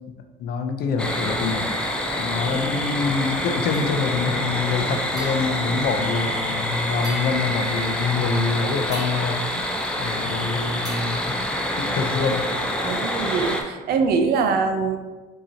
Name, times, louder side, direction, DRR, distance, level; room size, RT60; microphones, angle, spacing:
voice 1, 0.4-1.7 2.2-9.5 10.0-11.5 11.8-12.4, left 5 dB, 70° left, 6 dB, 0.5 m, -25 dB
sound 1, 1.0-13.6, equal, 5° left, 0.5 m, -26 dB
sound 2, 3.7-4.3 5.2-6.6 7.0-8.1 8.9-10.4 10.8-12.3, right 1 dB, 20° right, 1.4 m, -42 dB
voice 2, 12.8-15.0, right 5 dB, 65° right, 7 dB, 0.5 m, -23 dB
5.6 x 2.8 x 2.7 m, 1.2 s
cardioid pair, 110°, 17 cm